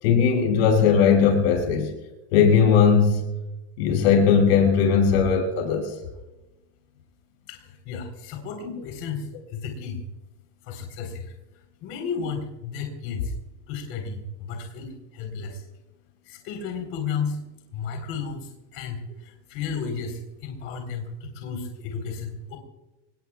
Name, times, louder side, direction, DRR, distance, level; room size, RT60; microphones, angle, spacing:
voice 1, 0.0-1.9 2.3-3.3 3.8-5.9, left 6 dB, 90° left, 2 dB, 7.2 m, -19 dB
voice 2, 7.5-10.0 10.6-13.3 13.7-15.7 16.2-17.4 17.7-22.6, left 5 dB, 45° left, 3 dB, 4.1 m, -33 dB
27.0 x 20.5 x 2.4 m, 1.0 s
cardioid pair, 165°, 30 cm